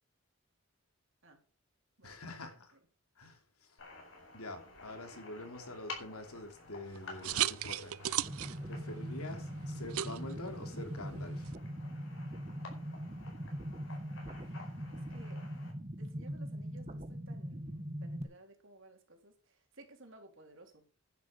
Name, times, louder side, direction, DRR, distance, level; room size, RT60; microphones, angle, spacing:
voice 1, 2.0-2.7 3.2-3.7 4.3-8.0 8.7-11.5, left 2 dB, 90° left, 3.2 m, -46 dB
sound 1, 3.8-15.7, left 3 dB, 60° left, 4.8 m, -52 dB
sound 2, 6.8-11.5, right 12 dB, 85° right, 0.5 m, -38 dB
sound 3, 8.2-18.2, equal, 30° right, 1.3 m, -41 dB
voice 2, 14.2-15.4 15.9-20.9, right 2 dB, 60° right, 3.6 m, -58 dB
11.0 x 10.5 x 5.2 m
head